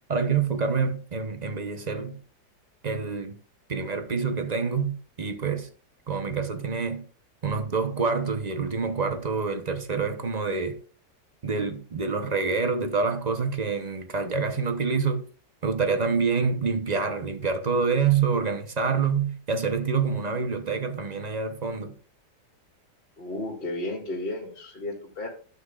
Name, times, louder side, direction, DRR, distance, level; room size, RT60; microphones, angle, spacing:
voice 1, 0.1-2.2 2.8-3.3 3.7-5.7 6.1-7.1 7.4-10.8 11.4-15.3 15.6-22.0, right 5 dB, 35° right, 0.7 m, -27 dB
voice 2, 23.2-25.3, left 2 dB, 35° left, 2.4 m, -33 dB
12.0 x 8.6 x 2.4 m
omnidirectional pair, 1.8 m